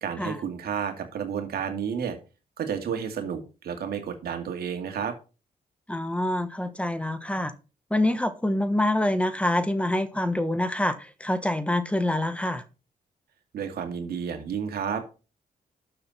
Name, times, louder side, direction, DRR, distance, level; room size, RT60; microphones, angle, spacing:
voice 1, 0.0-2.2 2.6-5.1 13.5-15.1, right 7 dB, 85° right, 5 dB, 2.4 m, -31 dB
voice 2, 5.9-7.5 7.9-12.6, left 1 dB, 10° left, 11 dB, 1.2 m, -26 dB
12.5 x 6.8 x 4.3 m, 0.33 s
cardioid pair, 90°, 16 cm